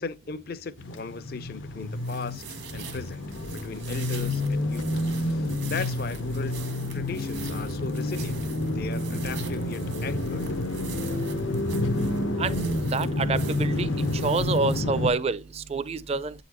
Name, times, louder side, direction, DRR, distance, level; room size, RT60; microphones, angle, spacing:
voice 1, 0.0-3.2 3.5-6.6 6.9-8.4 8.7-10.5, left 4 dB, 50° left, 0.4 m, -37 dB
sound 1, 0.8-15.1, left 1 dB, 85° left, 0.9 m, -29 dB
sound 2, 1.8-14.8, right 8 dB, 80° right, 1.3 m, -45 dB
voice 2, 12.4-13.9 14.2-16.3, right 4 dB, 35° right, 0.4 m, -28 dB
7.8 x 4.1 x 2.9 m
head